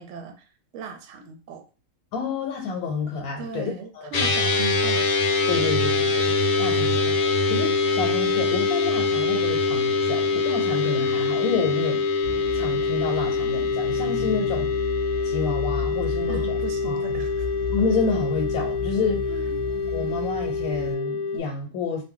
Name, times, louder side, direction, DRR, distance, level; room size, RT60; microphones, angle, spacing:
voice 1, 0.0-1.6 3.4-5.1 16.3-17.5 19.3-19.6, right 4 dB, 65° right, 4 dB, 0.8 m, -37 dB
voice 2, 2.1-4.3 5.5-6.3 6.6-12.0 12.5-14.7 15.2-16.6 16.8-17.2 17.7-19.3 19.9-22.0, left 4 dB, 85° left, 1 dB, 1.1 m, -29 dB
sound 1, 4.1-21.4, left 4 dB, 60° left, 0.6 m, -24 dB
sound 2, 12.2-20.9, left 4 dB, ahead, 0.8 m, -34 dB
2.6 x 2.1 x 3.7 m, 0.34 s
omnidirectional pair, 1.5 m